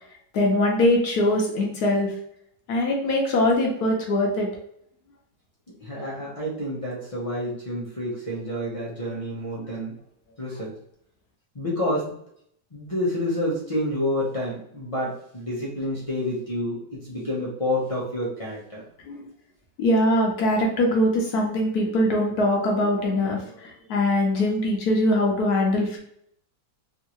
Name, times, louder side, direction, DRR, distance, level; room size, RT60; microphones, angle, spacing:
voice 1, 0.3-2.1 2.7-4.5 5.9-6.1 9.6-9.7 19.0-19.2 19.8-26.0, left 1 dB, 65° left, 0 dB, 1.2 m, -22 dB
voice 2, 5.8-9.9 10.4-10.7 11.5-12.1 12.7-18.8, left 1 dB, 45° left, -6 dB, 0.4 m, -29 dB
3.6 x 2.5 x 2.9 m, 0.69 s
omnidirectional pair, 1.9 m